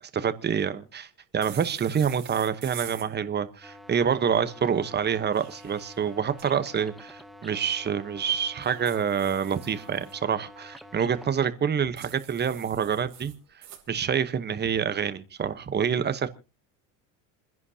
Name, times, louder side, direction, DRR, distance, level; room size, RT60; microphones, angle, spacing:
voice 1, 0.1-13.3 13.9-16.3, right 7 dB, 25° right, 1.1 m, -27 dB
sound 1, 1.4-3.1 5.1-6.5 8.6-10.1 12.0-13.8, right 10 dB, 45° right, 3.9 m, -46 dB
sound 2, 3.6-11.3, left 1 dB, ahead, 0.9 m, -48 dB
28.0 x 10.5 x 2.9 m
cardioid pair, 125°, 39 cm